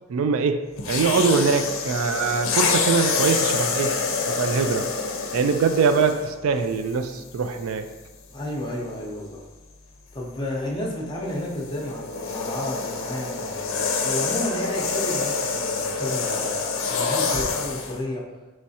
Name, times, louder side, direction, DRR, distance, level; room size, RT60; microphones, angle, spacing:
voice 1, 0.1-0.6 0.9-3.9 4.4-4.9 5.3-7.8, right 5 dB, 80° right, 8 dB, 0.3 m, -22 dB
sound 1, 0.8-6.3 7.1-7.3 11.3-18.0, left 4 dB, 70° left, 0.5 m, -26 dB
voice 2, 8.3-9.4 10.1-18.2, left 1 dB, 20° left, -2 dB, 0.6 m, -32 dB
4.6 x 3.2 x 2.7 m, 1.2 s
head